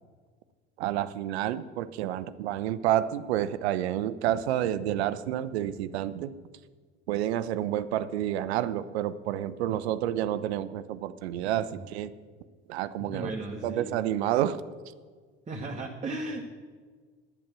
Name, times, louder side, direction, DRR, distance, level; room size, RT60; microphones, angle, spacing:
voice 1, 0.8-6.3 7.1-12.1 12.7-13.3 13.6-14.6, right 12 dB, 70° right, 14 dB, 0.7 m, -29 dB
voice 2, 13.0-14.0 15.5-16.5, right 2 dB, 20° right, 0 dB, 1.5 m, -35 dB
11.0 x 8.9 x 6.1 m, 1.5 s
figure-of-eight pair, 60°, 34 cm